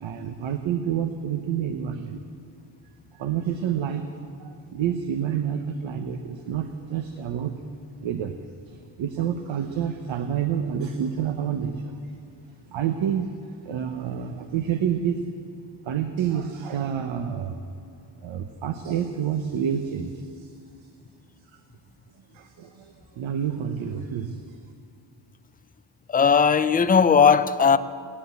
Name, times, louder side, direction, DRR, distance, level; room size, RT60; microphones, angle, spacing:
voice 1, 0.0-2.2 3.1-7.6 8.0-8.4 9.0-12.0 12.7-15.3 15.8-17.6 18.2-20.5 21.5-21.6 22.3-24.4, right 8 dB, 85° right, 0.9 m, -28 dB
voice 2, 26.1-27.8, left 6 dB, 20° left, 0.3 m, -17 dB
17.5 x 10.0 x 8.1 m
wide cardioid pair, 150°, 45 cm